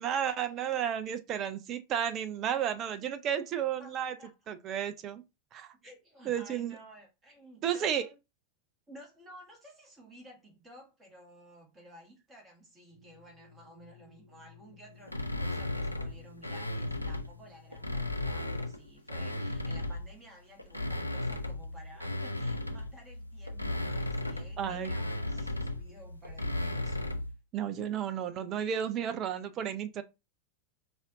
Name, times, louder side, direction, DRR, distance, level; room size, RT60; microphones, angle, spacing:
voice 1, 0.0-4.1 4.5-5.2 5.5-5.7 6.3-6.8 7.6-8.0 24.6-24.9 27.5-30.0, right 9 dB, 35° right, 0.4 m, -32 dB
voice 2, 3.8-4.3 5.8-8.2 8.9-27.0, equal, 15° right, 1.6 m, -54 dB
sound 1, 12.9-18.8, left 5 dB, 70° right, 0.8 m, -56 dB
sound 2, 15.1-17.3 17.7-20.1 20.6-27.3, left 1 dB, 85° left, 0.4 m, -35 dB
4.8 x 2.6 x 2.6 m
figure-of-eight pair, 90°, 0 cm